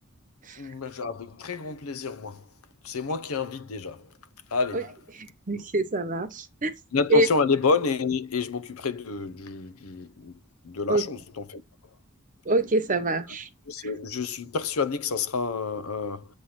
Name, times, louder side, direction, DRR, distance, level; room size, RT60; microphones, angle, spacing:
voice 1, 0.6-2.4 2.8-4.1 4.5-5.0 6.9-10.4 10.6-11.6 13.7-16.3, left 4 dB, 85° left, 0.7 m, -29 dB
voice 2, 5.1-6.7 7.1-7.3 10.9-11.0 12.5-13.5, right 2 dB, 35° right, 1.0 m, -25 dB
7.9 x 3.3 x 5.7 m
head